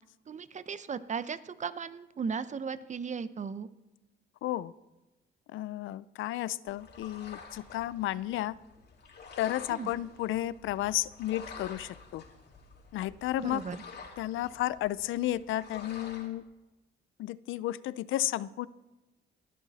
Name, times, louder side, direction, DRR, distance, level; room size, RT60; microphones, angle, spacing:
voice 1, 0.3-3.7 9.7-9.9 13.4-13.8, right 6 dB, 35° right, 15 dB, 0.8 m, -36 dB
voice 2, 4.4-4.7 5.5-8.5 9.4-12.2 12.9-13.6 14.2-16.4 17.2-18.7, left 14 dB, 85° left, 19 dB, 0.6 m, -32 dB
sound 1, 6.7-16.3, left 5 dB, 55° left, 3.6 m, -49 dB
19.5 x 12.0 x 4.2 m, 1.1 s
cardioid pair, 90°, 20 cm